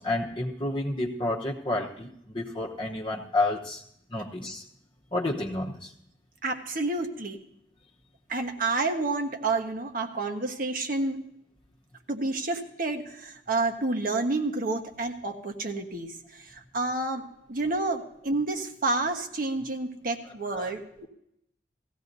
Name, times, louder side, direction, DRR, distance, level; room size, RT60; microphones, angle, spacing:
voice 1, 0.0-3.8 4.1-4.6 5.1-5.9 20.5-20.7, left 2 dB, 30° left, -2 dB, 1.0 m, -30 dB
voice 2, 6.4-7.4 8.3-11.2 12.1-21.1, right 3 dB, 50° right, 4 dB, 1.3 m, -29 dB
18.0 x 15.5 x 2.7 m, 0.78 s
head